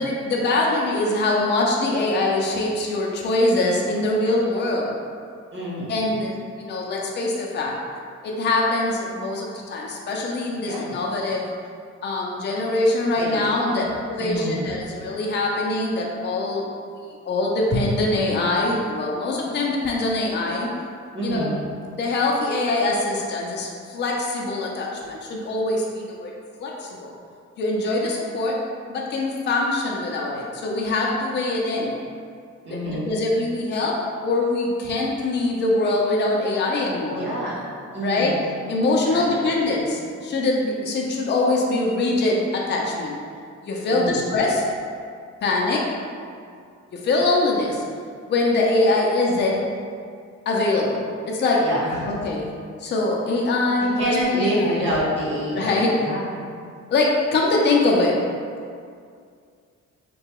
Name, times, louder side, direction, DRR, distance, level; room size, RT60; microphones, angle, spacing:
voice 1, 0.0-5.0 5.9-7.8 8.2-11.5 12.0-16.7 17.2-20.7 21.2-21.5 22.0-26.3 26.6-27.1 27.6-28.6 28.9-31.9 32.7-37.3 38.0-38.4 38.7-43.2 43.6-44.6 45.4-45.9 46.9-47.8 48.3-49.6 50.5-51.7 52.1-52.5 52.8-54.8 55.5-55.9 56.9-58.3, left 2 dB, 35° left, -2 dB, 0.4 m, -23 dB
voice 2, 5.5-6.1 10.6-10.9 13.2-13.8 14.2-14.6 21.1-21.6 32.6-33.1 37.1-37.6 37.9-38.4 39.0-39.5 43.9-44.3 51.6-52.2 54.0-56.3, right 1 dB, 40° right, -6 dB, 0.8 m, -27 dB
2.7 x 2.2 x 2.9 m, 2.2 s
cardioid pair, 90°, 30 cm